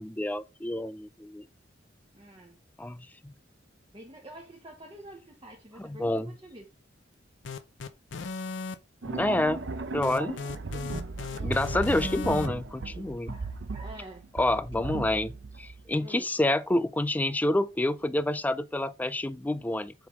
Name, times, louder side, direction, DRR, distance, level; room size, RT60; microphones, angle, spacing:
voice 1, 0.0-1.4 2.8-3.3 5.8-6.4 9.0-9.6 9.9-10.4 11.4-13.3 14.3-15.3 15.6-19.9, left 1 dB, 10° left, 0.3 m, -28 dB
voice 2, 2.1-2.6 3.9-6.7 11.3-11.6 13.3-14.3 16.0-16.3, right 1 dB, 25° right, 1.1 m, -47 dB
sound 1, 7.4-8.8 10.0-12.5, left 4 dB, 65° left, 0.6 m, -36 dB
sound 2, 9.0-15.9, right 3 dB, 65° right, 0.7 m, -36 dB
7.7 x 3.5 x 3.6 m
head